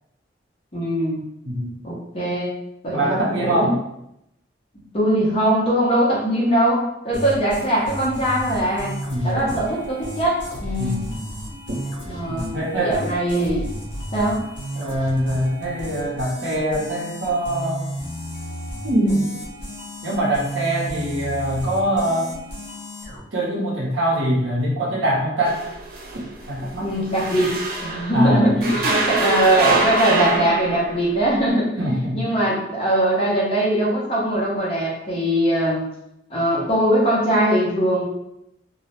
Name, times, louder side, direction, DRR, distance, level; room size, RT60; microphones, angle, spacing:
voice 1, 0.7-1.2 1.8-2.5 2.8-3.1 3.3-3.7 4.9-8.9 9.2-11.0 12.1-13.7 14.1-14.4 26.8-27.6 27.8-31.7 32.1-35.9 36.3-38.0, right 1 dB, 30° left, -5 dB, 0.7 m, -21 dB
voice 2, 1.4-1.8 2.9-3.7 9.1-9.5 10.8-11.2 11.7-11.8 12.3-13.0 14.7-17.8 18.8-19.3 20.0-22.3 23.3-25.6 26.5-26.9 28.1-28.8 31.8-32.3, right 1 dB, 90° right, -3 dB, 0.7 m, -23 dB
sound 1, 7.1-23.2, equal, 90° left, 0.8 m, -33 dB
sound 2, 25.4-28.2 28.6-31.1, right 3 dB, 50° right, 0.4 m, -24 dB
2.3 x 2.0 x 2.9 m, 0.82 s
head